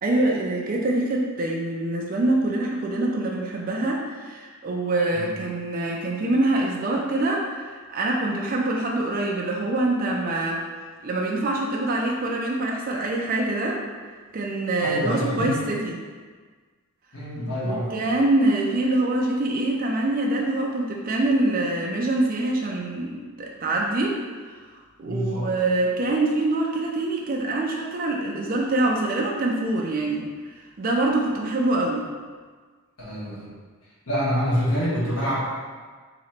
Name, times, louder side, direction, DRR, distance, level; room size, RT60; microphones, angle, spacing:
voice 1, 0.0-10.6 11.0-13.8 14.3-16.0 17.6-24.2 24.5-24.6 25.0-30.3 30.8-32.0, right 2 dB, 40° right, -2 dB, 0.4 m, -25 dB
voice 2, 14.8-15.5 17.1-17.9 25.0-25.5 33.0-33.5 34.1-35.4, equal, 80° left, -9 dB, 1.3 m, -26 dB
3.0 x 2.9 x 4.3 m, 1.5 s
head